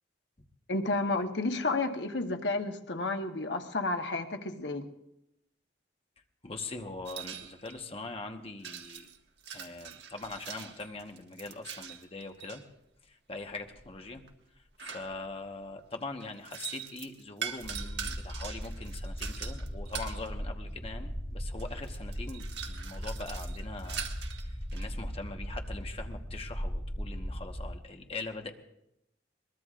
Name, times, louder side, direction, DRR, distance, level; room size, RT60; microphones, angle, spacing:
voice 1, 0.7-4.9, left 2 dB, 85° left, 5 dB, 1.2 m, -31 dB
voice 2, 6.4-9.1 9.5-12.6 13.0-14.2 14.8-24.1 24.4-28.5, left 3 dB, 35° left, 4 dB, 1.2 m, -42 dB
sound 1, 7.1-7.8 8.6-12.6 13.5-15.5 16.2-20.3 21.2-21.3 21.6-24.9, right 8 dB, 80° right, 1.6 m, -43 dB
sound 2, 17.6-27.7, equal, 5° left, 4.9 m, -38 dB
22.5 x 20.5 x 2.5 m, 0.83 s
head